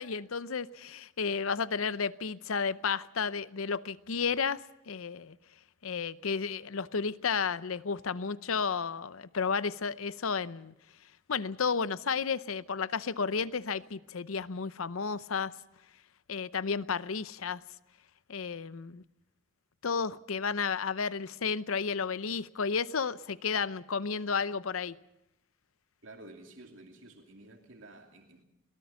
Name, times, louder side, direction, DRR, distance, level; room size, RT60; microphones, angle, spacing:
voice 1, 0.0-4.6 4.9-5.4 5.8-10.7 11.3-15.5 16.3-17.6 18.3-19.0 19.8-25.0, left 5 dB, 80° left, 0.7 m, -32 dB
voice 2, 26.0-28.4, right 2 dB, 65° right, 2.8 m, -51 dB
22.5 x 18.0 x 6.9 m
head